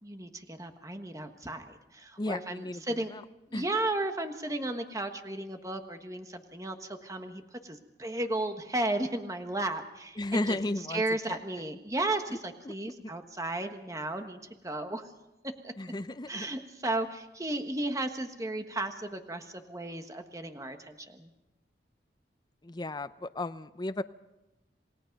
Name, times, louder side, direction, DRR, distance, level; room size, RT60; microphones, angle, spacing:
voice 1, 0.0-3.1 3.5-15.1 15.6-15.7 16.3-21.3, right 2 dB, 20° right, 6 dB, 1.4 m, -34 dB
voice 2, 2.2-2.8 3.5-3.6 10.2-11.0 11.3-11.4 15.8-16.5 22.6-24.0, left 2 dB, 25° left, 11 dB, 0.6 m, -33 dB
28.0 x 18.0 x 5.3 m, 0.96 s
head